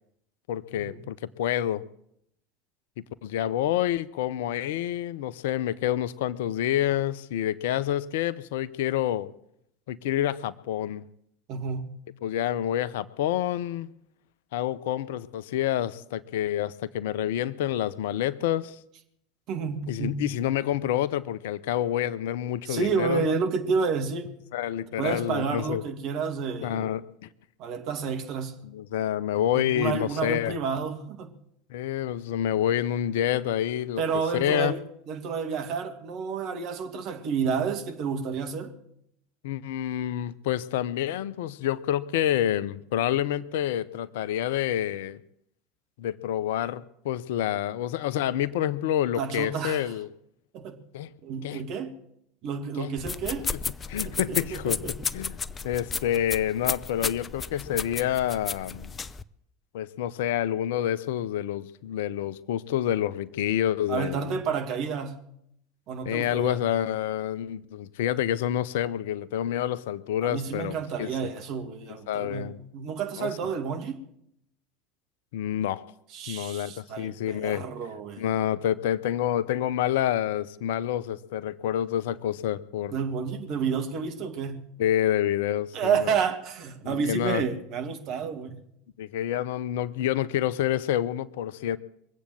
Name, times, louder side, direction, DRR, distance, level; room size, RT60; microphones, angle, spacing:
voice 1, 0.5-1.8 3.2-9.3 9.9-11.0 12.2-13.9 14.5-18.8 19.9-23.4 24.5-25.8 26.6-27.3 28.7-30.6 31.7-34.0 34.3-34.7 39.4-45.2 46.0-50.1 50.9-51.1 51.4-51.6 52.8-52.9 53.5-53.6 53.9-54.8 55.1-55.4 55.6-58.9 59.7-64.4 66.0-71.1 72.1-72.6 73.2-73.4 75.3-75.8 76.3-77.6 78.2-82.9 84.8-86.2 86.8-87.4 89.0-91.8, left 11 dB, 70° left, 17 dB, 0.6 m, -28 dB
voice 2, 11.5-11.9 19.5-20.2 22.6-24.3 25.0-26.9 27.6-28.6 29.5-31.3 34.0-38.7 49.1-49.9 50.5-50.8 51.2-51.9 52.4-53.5 54.0-55.0 63.9-65.2 65.9-66.6 70.2-74.0 76.1-78.3 82.9-84.7 85.7-88.6, right 6 dB, 55° right, 6 dB, 2.2 m, -30 dB
sound 1, 53.0-59.2, left 5 dB, 25° left, 0.7 m, -33 dB
22.5 x 8.4 x 7.7 m, 0.76 s
hypercardioid pair, 75°, 0 cm